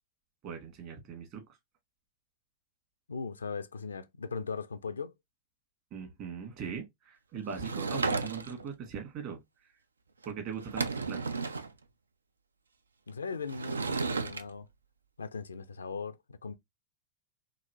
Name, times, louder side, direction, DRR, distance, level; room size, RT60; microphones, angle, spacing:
voice 1, 0.4-1.4 5.9-9.4 10.2-11.2, right 6 dB, 40° right, 1.7 m, -40 dB
voice 2, 3.1-5.1 13.1-14.7 15.2-16.5, left 4 dB, 75° left, 0.4 m, -38 dB
Sliding door / Wood, 7.5-8.7 10.2-10.3 10.6-11.7 13.5-14.4, right 4 dB, 75° right, 0.4 m, -33 dB
4.0 x 2.9 x 2.7 m
figure-of-eight pair, 90°, 0 cm